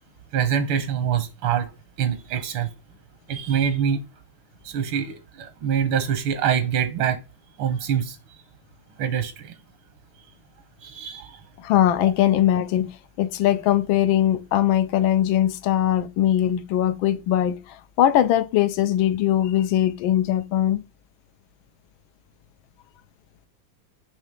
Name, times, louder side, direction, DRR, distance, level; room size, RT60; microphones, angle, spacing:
voice 1, 0.3-1.7 2.0-2.7 3.3-4.0 4.6-7.2 7.6-8.2 9.0-9.5 10.8-11.4, right 8 dB, 85° right, 1.7 m, -25 dB
voice 2, 11.6-20.8, left 11 dB, 85° left, 1.4 m, -21 dB
6.3 x 3.0 x 5.2 m
omnidirectional pair, 2.2 m